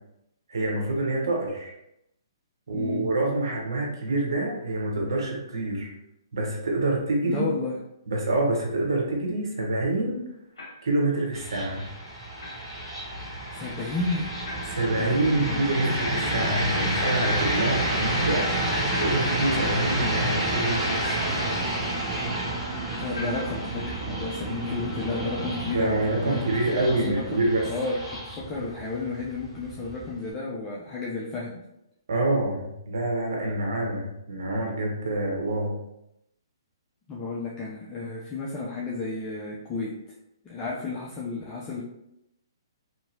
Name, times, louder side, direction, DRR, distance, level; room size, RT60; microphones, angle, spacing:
voice 1, 0.5-1.7 2.7-5.9 6.3-7.4 8.1-10.2 10.8-11.8 14.7-18.5 19.0-21.5 25.7-27.7 32.1-35.7, right 2 dB, 70° right, -1 dB, 1.0 m, -26 dB
voice 2, 2.7-3.1 7.2-7.8 13.5-14.3 15.0-15.7 23.0-31.6 37.1-40.0 40.4-41.8, left 3 dB, 20° left, -5 dB, 0.5 m, -32 dB
sound 1, 10.6-10.9 12.4-12.6 14.4-14.9 17.2-17.8 18.9-19.5 21.0-21.5 23.1-23.7, left 1 dB, 80° left, 0.8 m, -38 dB
sound 2, 11.3-30.3, right 1 dB, 5° right, 1.2 m, -30 dB
2.9 x 2.8 x 2.7 m, 0.83 s
hypercardioid pair, 130°, 2 cm